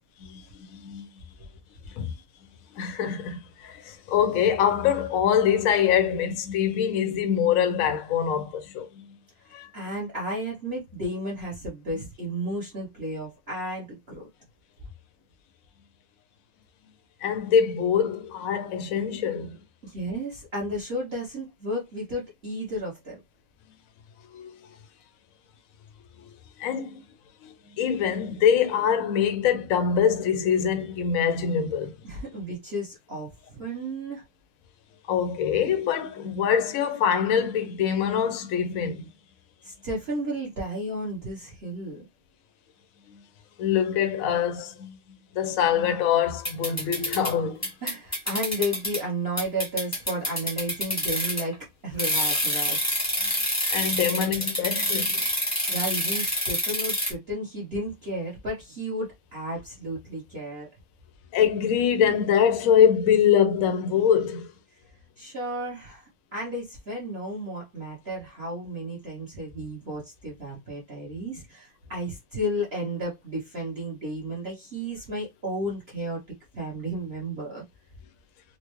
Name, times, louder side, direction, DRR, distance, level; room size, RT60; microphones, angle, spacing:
voice 1, 0.7-1.1 2.0-2.1 2.7-9.1 9.5-9.7 17.2-19.6 24.3-24.5 26.2-27.0 27.4-31.9 35.1-39.1 43.1-43.2 43.6-45.0 45.3-47.7 53.7-55.3 61.3-64.5, left 8 dB, 60° left, 0.9 m, -24 dB
voice 2, 9.4-14.3 19.8-23.2 32.0-34.2 39.6-42.0 47.8-53.0 53.9-54.0 55.7-60.7 65.2-76.2 76.5-77.6, equal, 40° right, 1.0 m, -33 dB
sound 1, 46.4-47.3 47.6-49.0 49.4-51.5 52.0-57.1, left 1 dB, 10° left, 0.8 m, -27 dB
4.3 x 2.1 x 3.0 m
omnidirectional pair, 2.0 m